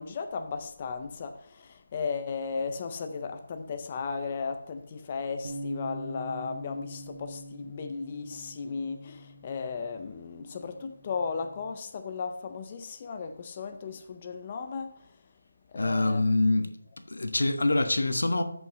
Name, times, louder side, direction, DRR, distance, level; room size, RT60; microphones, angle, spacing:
voice 1, 0.0-15.0 15.7-16.2, left 5 dB, 25° left, 0.4 m, -35 dB
Bass guitar, 5.4-11.7, equal, 55° right, 1.5 m, -43 dB
voice 2, 15.7-16.7 17.1-18.4, left 2 dB, 85° left, 1.3 m, -25 dB
14.0 x 5.6 x 3.0 m
figure-of-eight pair, 170°, 0 cm